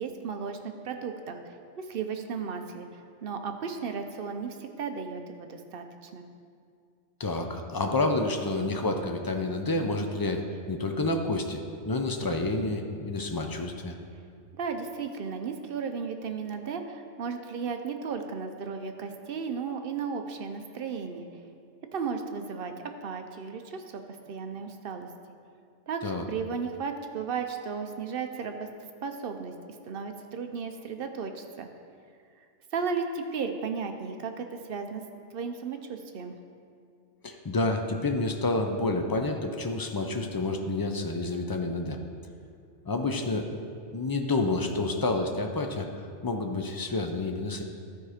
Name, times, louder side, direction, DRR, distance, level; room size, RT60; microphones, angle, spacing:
voice 1, 0.0-6.2 14.5-21.3 21.9-22.7 23.0-24.0 24.3-25.1 25.9-28.7 29.0-29.5 29.8-31.7 32.4-32.5 32.7-35.0 35.3-36.4, right 5 dB, 60° right, 6 dB, 0.8 m, -35 dB
voice 2, 7.2-14.0 26.0-26.2 37.2-42.0 42.9-43.5 43.9-45.9 46.2-47.6, left 2 dB, 35° left, 4 dB, 0.3 m, -29 dB
12.5 x 4.7 x 4.9 m, 2.3 s
omnidirectional pair, 1.2 m